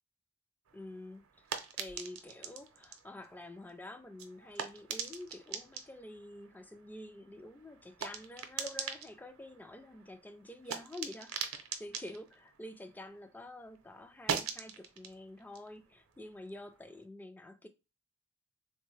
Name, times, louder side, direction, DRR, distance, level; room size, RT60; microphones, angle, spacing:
voice 1, 0.7-1.5 1.8-17.7, left 1 dB, 10° left, 0.3 m, -48 dB
sound 1, 0.7-13.4 13.7-17.0, right 6 dB, 85° right, 0.6 m, -43 dB
3.6 x 2.2 x 3.1 m
head